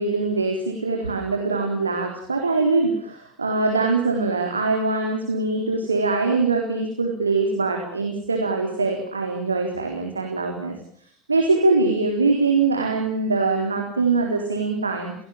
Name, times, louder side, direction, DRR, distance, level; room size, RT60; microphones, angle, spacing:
voice 1, 0.0-10.7 11.3-15.1, right 3 dB, 85° right, 2 dB, 3.9 m, -23 dB
29.0 x 19.0 x 7.6 m, 0.62 s
figure-of-eight pair, 65°, 0 cm